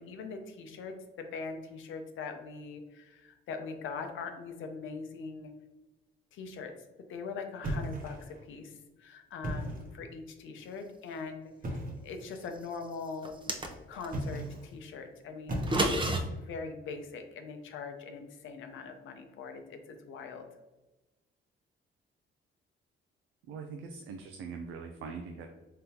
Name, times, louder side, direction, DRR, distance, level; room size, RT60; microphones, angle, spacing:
voice 1, 0.0-5.5 6.3-6.7 7.1-13.4 13.9-20.5, left 4 dB, 80° left, 5 dB, 0.7 m, -42 dB
sound 1, 7.6-8.4 9.3-10.0 11.6-12.1 14.0-14.7 15.5-16.2, right 1 dB, 45° right, 1.0 m, -36 dB
sound 2, 13.2-14.1 15.5-16.2, right 1 dB, 25° right, 0.7 m, -30 dB
voice 2, 23.5-25.5, right 5 dB, 85° right, 4 dB, 0.5 m, -42 dB
3.9 x 3.6 x 2.8 m, 1.1 s
cardioid pair, 90°, 20 cm